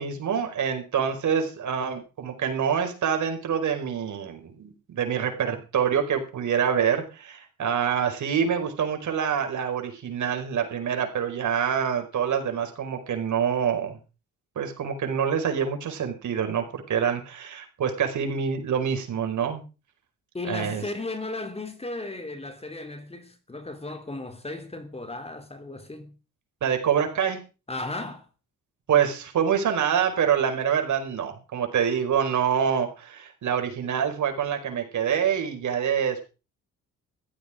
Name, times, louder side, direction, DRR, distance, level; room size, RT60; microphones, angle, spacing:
voice 1, 0.0-14.0 14.5-19.6 20.5-20.8 26.6-27.4 28.9-36.2, right 7 dB, 65° right, 4.9 m, -26 dB
voice 2, 20.3-26.2 27.7-28.3, left 2 dB, 20° left, 2.9 m, -35 dB
15.0 x 12.5 x 5.0 m
cardioid pair, 90°, 32 cm